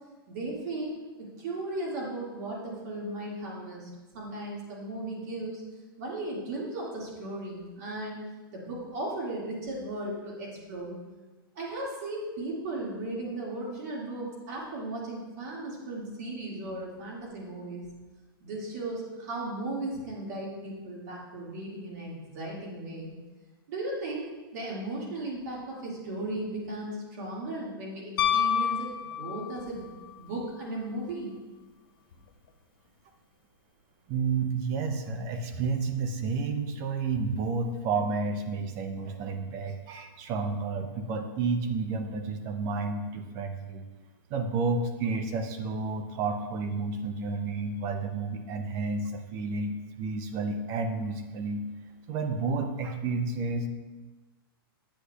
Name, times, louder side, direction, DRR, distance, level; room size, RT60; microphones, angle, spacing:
voice 1, 0.3-0.9 1.2-5.6 6.0-8.2 8.5-11.0 11.6-17.8 18.4-23.1 23.7-24.3 24.5-28.9 29.2-29.9 30.2-31.4, right 2 dB, 45° right, -3 dB, 2.0 m, -36 dB
Piano, 28.2-29.8 32.1-32.2, left 8 dB, 65° left, 0.5 m, -27 dB
voice 2, 34.1-43.9 44.3-51.6 52.1-53.7, right 4 dB, 25° right, 7 dB, 0.4 m, -31 dB
8.1 x 7.9 x 2.3 m, 1.2 s
hypercardioid pair, 160°, 12 cm